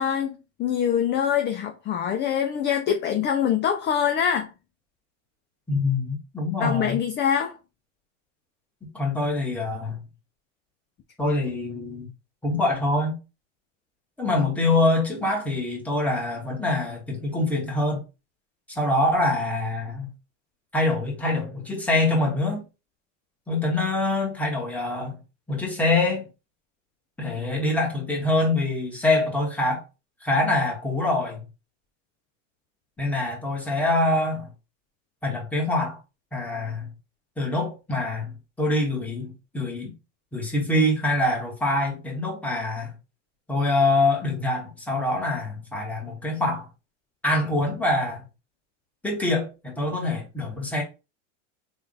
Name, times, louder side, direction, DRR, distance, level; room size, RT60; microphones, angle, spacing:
voice 1, 0.0-4.5 6.6-7.6, left 8 dB, 30° left, 0.5 m, -24 dB
voice 2, 5.7-7.0 8.8-10.0 11.2-12.1 12.4-13.2 14.2-18.0 18.7-20.1 20.7-22.6 23.5-25.2 25.5-26.3 27.2-29.8 30.2-31.4 33.0-34.5 35.2-36.0 36.3-36.9 37.4-39.9 40.3-42.9 43.5-46.7 47.2-48.2 49.0-50.8, left 2 dB, 5° left, 1.5 m, -25 dB
3.5 x 2.5 x 3.9 m
supercardioid pair, 110°, 38 cm